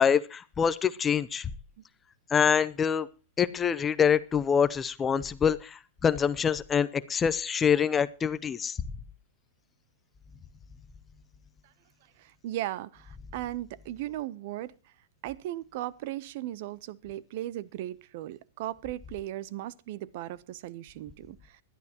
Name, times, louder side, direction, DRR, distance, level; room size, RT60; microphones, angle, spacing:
voice 1, 0.0-1.5 2.3-3.1 3.4-8.8, left 7 dB, 15° left, 0.6 m, -25 dB
voice 2, 12.2-14.7 15.2-21.4, right 14 dB, 45° right, 0.6 m, -37 dB
20.5 x 12.0 x 2.9 m
supercardioid pair, 160°, 0 cm